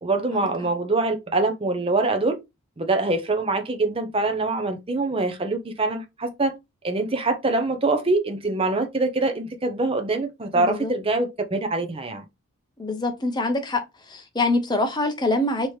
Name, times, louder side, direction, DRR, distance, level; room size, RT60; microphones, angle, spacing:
voice 1, 0.0-2.4 2.8-6.6 6.8-12.2, right 2 dB, 25° right, 0.6 m, -24 dB
voice 2, 10.5-10.9 12.8-13.8 14.1-15.7, left 2 dB, 20° left, 0.7 m, -24 dB
4.6 x 2.9 x 3.1 m
head